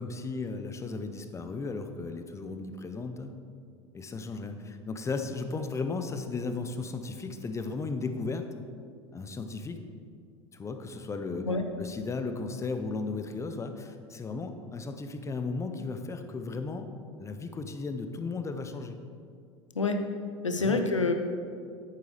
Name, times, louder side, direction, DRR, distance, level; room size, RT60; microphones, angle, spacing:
voice 1, 0.0-3.3 3.9-8.5 9.1-9.8 10.5-11.5 11.8-16.9 17.2-19.0 20.6-20.8, left 4 dB, 20° left, 8 dB, 0.7 m, -35 dB
voice 2, 20.4-21.1, left 3 dB, 85° left, 6 dB, 0.7 m, -26 dB
10.5 x 9.2 x 3.3 m, 2.3 s
figure-of-eight pair, 80°, 16 cm